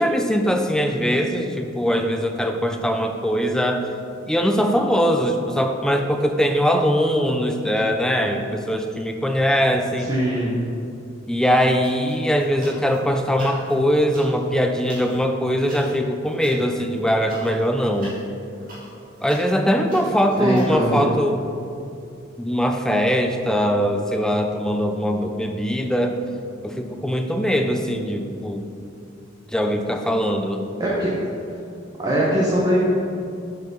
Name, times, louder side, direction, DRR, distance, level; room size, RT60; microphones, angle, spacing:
voice 1, 0.0-3.9 4.3-10.1 11.3-18.2 19.2-21.4 22.4-26.2 26.6-28.7 29.5-30.6, equal, 5° left, 5 dB, 0.5 m, -21 dB
voice 2, 10.0-10.6 20.4-21.1 30.8-31.1 32.0-32.8, right 1 dB, 20° right, -6 dB, 1.1 m, -21 dB
sound 1, 11.8-13.0 13.3-20.7, right 1 dB, 45° right, 2.0 m, -44 dB
8.0 x 4.8 x 5.4 m, 2.5 s
head